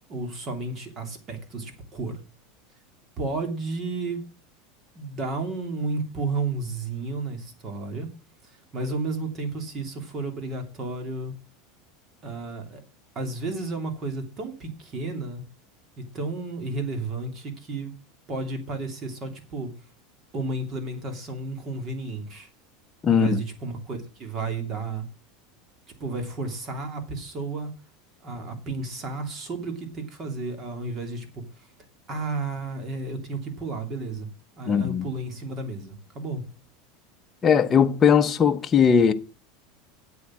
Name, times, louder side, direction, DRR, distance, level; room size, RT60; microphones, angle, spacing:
voice 1, 0.0-2.2 3.2-4.3 4.9-8.1 8.4-11.3 12.2-12.8 13.1-15.4 16.1-17.9 18.3-19.7 20.3-22.5 23.1-25.1 26.0-27.8 28.2-31.7 32.1-34.3 34.6-36.4, right 3 dB, 30° right, 2.9 m, -32 dB
voice 2, 23.0-23.4 34.7-35.0 37.4-39.1, left 7 dB, 25° left, 0.9 m, -19 dB
8.5 x 8.4 x 7.5 m
supercardioid pair, 140°, 0 cm